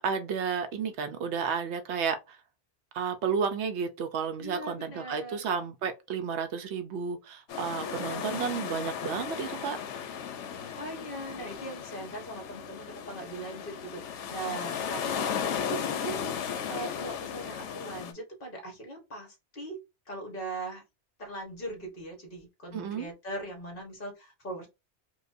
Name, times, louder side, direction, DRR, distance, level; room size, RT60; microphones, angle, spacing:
voice 1, 0.0-2.4 2.9-9.8 22.7-23.1, right 6 dB, 75° right, 0.9 m, -32 dB
voice 2, 4.4-5.5 7.8-8.6 10.6-20.8 21.2-24.7, right 2 dB, 50° left, 1.4 m, -40 dB
sound 1, 7.5-18.1, left 7 dB, 90° left, 0.9 m, -35 dB
4.6 x 2.2 x 2.5 m
omnidirectional pair, 1.2 m